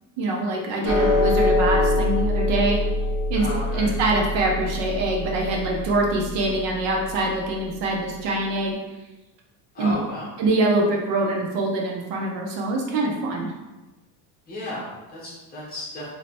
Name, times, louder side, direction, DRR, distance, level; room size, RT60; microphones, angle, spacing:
voice 1, 0.2-2.8 3.3-3.5 3.7-8.8 9.8-9.9 10.4-13.5, right 2 dB, 80° right, 0 dB, 1.0 m, -24 dB
sound 1, 0.8-7.4, left 1 dB, 5° right, 0.7 m, -24 dB
voice 2, 3.3-3.9 9.7-10.3 14.5-16.1, left 1 dB, 20° left, -7 dB, 1.2 m, -34 dB
3.2 x 3.0 x 4.2 m, 1.1 s
cardioid pair, 180°, 42 cm